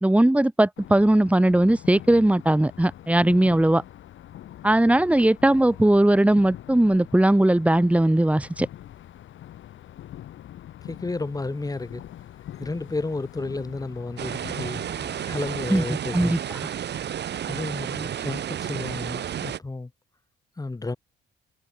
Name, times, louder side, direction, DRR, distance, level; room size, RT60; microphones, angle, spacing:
voice 1, 0.0-3.8 4.6-8.7 15.7-15.8 16.1-16.4, right 1 dB, 5° right, 1.7 m, -19 dB
sound 1, 0.8-15.9, left 12 dB, 75° left, 5.8 m, -44 dB
voice 2, 10.8-12.0 12.6-14.8 15.2-16.4 17.5-19.9 20.6-21.0, left 3 dB, 20° left, 2.4 m, -32 dB
sound 2, 14.2-19.6, right 10 dB, 60° right, 1.6 m, -32 dB
cardioid pair, 90°, 20 cm